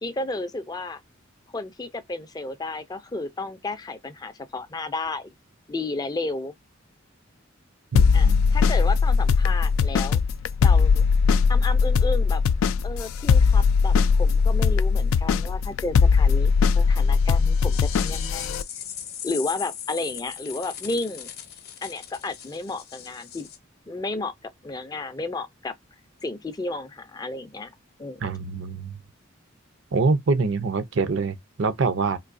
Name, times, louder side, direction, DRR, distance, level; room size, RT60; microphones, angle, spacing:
voice 1, 0.0-1.0 1.5-5.3 5.7-6.5 8.1-10.2 10.6-11.0 11.5-12.4 12.8-18.6 19.2-21.3 21.8-23.5 23.9-25.7 26.2-27.7 28.0-28.3, left 2 dB, 20° left, 0.4 m, -32 dB
voice 2, 7.9-8.6 28.2-29.0 29.9-32.2, right 4 dB, 65° right, 0.5 m, -25 dB
sound 1, 8.0-18.6, left 5 dB, 90° left, 0.3 m, -20 dB
sound 2, 17.7-23.6, left 9 dB, 50° left, 0.7 m, -38 dB
3.7 x 2.6 x 2.5 m
head